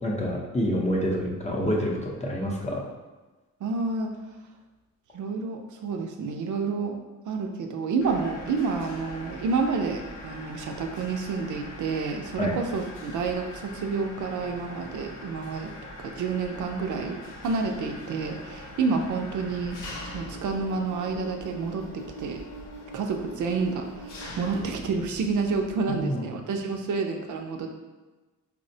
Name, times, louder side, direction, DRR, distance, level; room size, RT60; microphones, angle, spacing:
voice 1, 0.0-2.8 12.4-12.6 25.9-26.3, equal, 20° left, -2 dB, 0.6 m, -27 dB
voice 2, 3.6-4.1 5.1-6.9 7.3-15.7 16.0-17.2 17.4-19.8 20.1-22.4 22.9-27.8, right 4 dB, 70° right, 3 dB, 0.5 m, -29 dB
Mechanisms, 8.0-26.0, left 1 dB, 85° left, 0.7 m, -42 dB
4.3 x 2.0 x 2.6 m, 1.2 s
cardioid pair, 100°, 32 cm